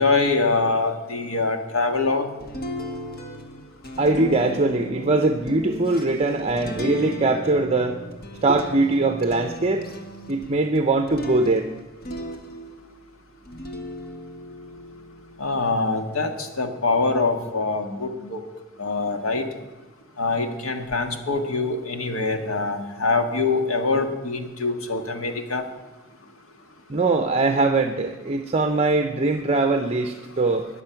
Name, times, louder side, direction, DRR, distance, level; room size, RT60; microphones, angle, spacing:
voice 1, 0.0-2.3 15.4-18.4 18.8-19.4 20.2-25.6, left 3 dB, 85° left, 6 dB, 1.6 m, -24 dB
sound 1, 2.4-13.0 13.4-15.8, equal, 50° left, 1.6 m, -36 dB
voice 2, 4.0-8.0 8.4-9.8 10.3-11.7 26.9-30.7, right 2 dB, 30° right, 6 dB, 0.7 m, -21 dB
20.5 x 7.0 x 5.8 m, 1.2 s
head